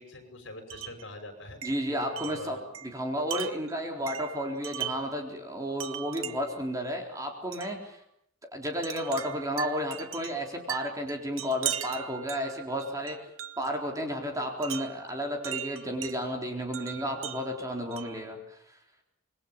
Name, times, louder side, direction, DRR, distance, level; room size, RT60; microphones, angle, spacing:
voice 1, 0.0-1.6 2.2-2.8, left 1 dB, 65° left, 6 dB, 6.0 m, -44 dB
Wind chime, 0.7-1.1 1.6-5.2 5.8-6.6 7.5-7.8 8.8-13.8 14.6-16.2 16.7-18.3, right 11 dB, 90° right, 1.1 m, -39 dB
voice 2, 1.6-8.0 8.5-13.2 13.6-18.4, equal, 15° right, 2 dB, 3.9 m, -32 dB
27.0 x 21.5 x 7.3 m, 0.73 s
head